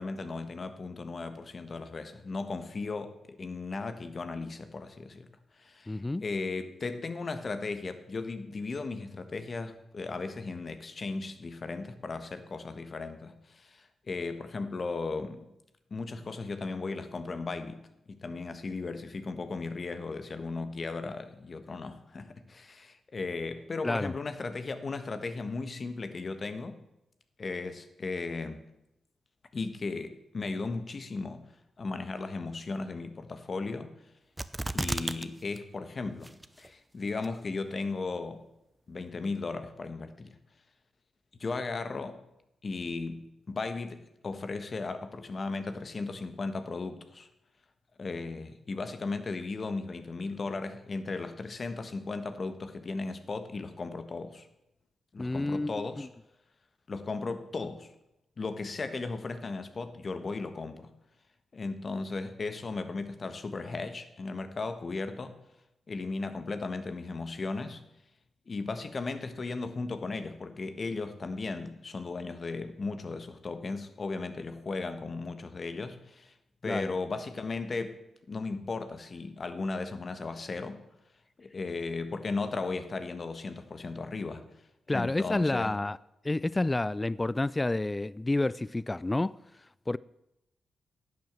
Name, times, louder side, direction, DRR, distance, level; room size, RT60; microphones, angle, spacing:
voice 1, 0.0-5.3 5.6-15.5 15.9-17.8 18.1-26.8 27.4-28.6 29.5-31.5 31.8-33.9 34.7-36.3 36.6-38.4 38.9-40.3 41.4-42.2 42.6-47.3 48.0-54.5 55.1-56.1 56.9-57.9 58.4-60.9 61.5-65.4 65.9-67.8 68.5-76.3 76.6-78.0 78.3-80.8 81.4-84.4 84.9-85.7, left 3 dB, 50° left, 1.4 m, -36 dB
voice 2, 5.9-6.2 23.8-24.1 55.2-55.7 76.7-76.9 84.9-86.0 86.2-89.4 89.9-90.0, left 2 dB, 25° left, 0.3 m, -29 dB
sound 1, 34.4-35.3 35.6-35.7 36.2-36.7 37.2-37.3, right 1 dB, 15° right, 0.8 m, -32 dB
11.0 x 7.6 x 7.5 m
supercardioid pair, 45°, 0 cm